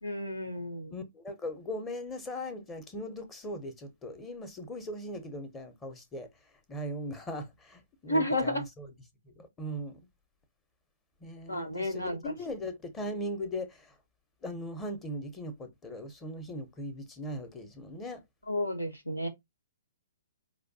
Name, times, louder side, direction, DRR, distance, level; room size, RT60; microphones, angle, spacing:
voice 1, 0.0-0.9 8.1-8.6 11.5-12.3 18.5-19.3, left 1 dB, 85° left, 1.2 m, -31 dB
voice 2, 0.9-6.3 6.7-8.9 9.2-10.1 11.2-14.0 14.4-18.2, equal, 15° left, 0.8 m, -39 dB
4.9 x 2.3 x 2.7 m
figure-of-eight pair, 120°, 0 cm